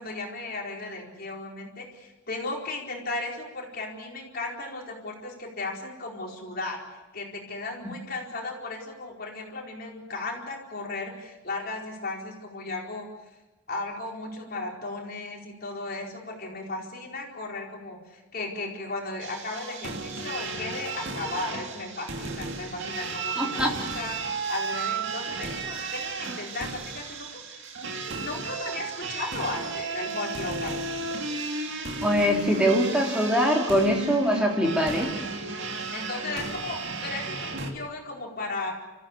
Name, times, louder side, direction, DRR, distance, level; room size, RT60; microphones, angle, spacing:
voice 1, 0.0-6.8 7.1-13.1 13.7-24.2 24.5-30.8 35.9-38.7, left 2 dB, 45° left, 0 dB, 4.5 m, -35 dB
sound 1, 19.2-37.7, right 3 dB, 55° right, 2.6 m, -33 dB
voice 2, 23.4-23.7 32.0-35.1, equal, 5° right, -1 dB, 3.5 m, -23 dB
29.5 x 15.0 x 8.4 m, 1.1 s
head